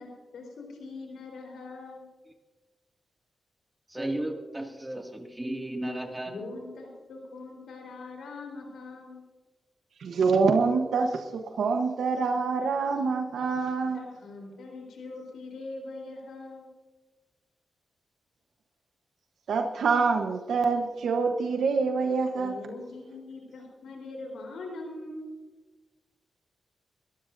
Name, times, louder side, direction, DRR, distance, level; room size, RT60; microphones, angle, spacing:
voice 1, 0.0-2.0 6.2-9.2 13.9-16.7 22.3-25.3, left 3 dB, 85° left, 1 dB, 4.0 m, -42 dB
voice 2, 3.9-6.3, right 1 dB, 15° right, 2 dB, 2.2 m, -34 dB
voice 3, 10.0-14.0 19.5-22.5, right 4 dB, 80° right, 5 dB, 1.0 m, -26 dB
23.0 x 14.5 x 2.6 m, 1.3 s
cardioid pair, 65°, 0 cm